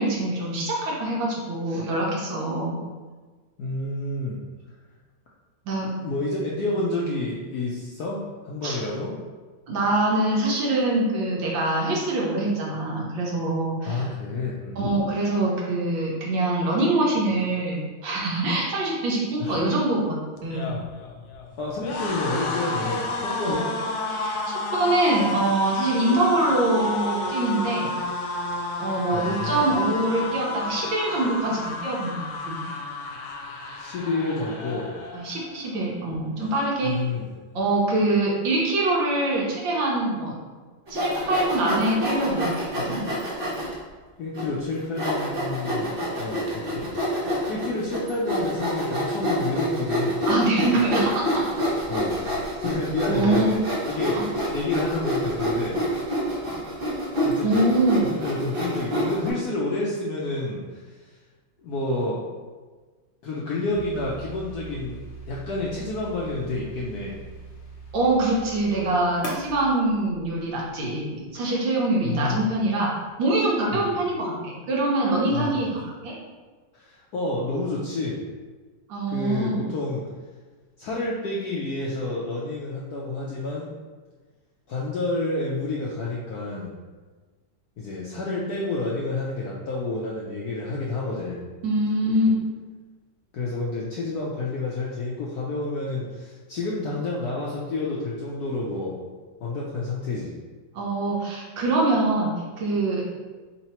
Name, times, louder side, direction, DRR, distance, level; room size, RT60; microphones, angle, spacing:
voice 1, 0.0-2.8 5.7-5.9 8.6-8.8 9.7-14.0 14.8-20.7 23.4-23.6 24.1-24.4 24.7-27.9 28.8-32.7 35.1-36.9 37.5-40.3 40.9-43.0 50.3-51.4 53.1-53.5 54.1-54.2 57.4-58.1 67.9-72.9 73.2-75.7 76.0-76.1 78.9-79.6 91.6-92.3 100.7-103.0, right 2 dB, 70° right, -4 dB, 1.6 m, -24 dB
voice 2, 3.6-4.4 6.0-9.1 13.8-14.9 19.4-19.6 21.6-23.7 29.1-29.7 33.8-34.9 36.8-37.3 44.2-50.2 51.9-52.2 52.5-53.6 53.8-55.8 57.2-57.7 58.0-61.2 61.6-62.2 63.2-67.2 72.0-72.4 73.7-74.0 75.3-75.6 76.7-78.2 79.1-80.0 80.8-83.7 84.7-86.7 87.8-91.5 93.3-99.0 99.4-100.4, left 2 dB, 70° left, -4 dB, 0.9 m, -29 dB
sound 1, 20.4-35.6 35.9-36.2 36.4-37.2, left 3 dB, 85° left, 1.4 m, -31 dB
Sawing, 40.9-43.7 44.3-44.4 45.0-59.3, equal, 55° right, 0.6 m, -27 dB
sound 2, 63.7-70.7, right 2 dB, 50° left, 0.6 m, -40 dB
4.3 x 3.8 x 2.9 m, 1.4 s
omnidirectional pair, 2.2 m